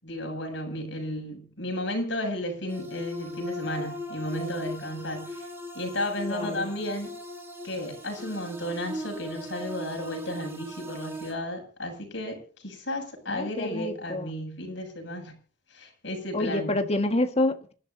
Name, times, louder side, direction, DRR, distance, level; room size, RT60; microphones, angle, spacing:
voice 1, 0.0-5.5 5.7-7.1 7.6-15.3 15.7-16.8, left 1 dB, 65° left, 7.6 m, -33 dB
sound 1, 2.7-11.3, left 1 dB, 15° right, 4.8 m, -38 dB
voice 2, 6.3-6.7 13.3-14.3 16.3-17.7, left 2 dB, 35° left, 1.7 m, -28 dB
27.5 x 12.5 x 2.8 m
head